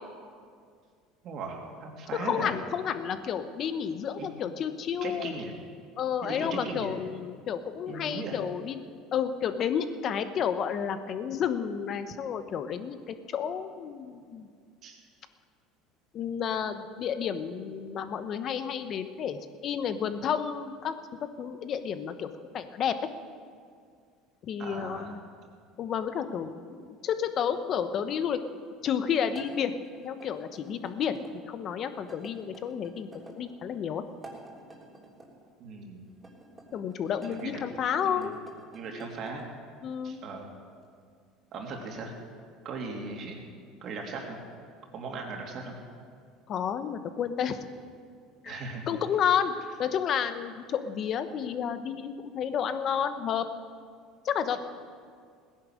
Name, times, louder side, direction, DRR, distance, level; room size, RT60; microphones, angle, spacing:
voice 1, 1.2-2.5 4.2-4.3 5.0-5.5 6.2-6.9 7.9-8.4 14.8-15.0 24.6-25.2 35.6-36.1 37.3-37.6 38.0-38.3 38.7-39.4 40.0-40.5 41.5-42.1 42.6-43.4 43.8-44.4 44.9-45.8 48.4-48.9, right 3 dB, 50° right, 1 dB, 2.9 m, -38 dB
voice 2, 2.1-5.3 6.0-14.5 16.1-20.9 21.2-22.3 22.5-23.0 24.4-25.2 25.8-28.4 28.8-29.8 30.0-34.0 36.7-38.3 39.8-40.2 46.5-47.6 48.4-48.6 48.9-49.5 49.8-53.4 54.2-54.6, left 8 dB, 45° left, 10 dB, 1.0 m, -31 dB
sound 1, 29.3-31.3 32.1-33.4 34.1-35.3 36.2-37.5 38.1-39.5, right 2 dB, 15° right, 3.2 m, -50 dB
17.0 x 10.5 x 6.5 m, 2.1 s
supercardioid pair, 105°, 0 cm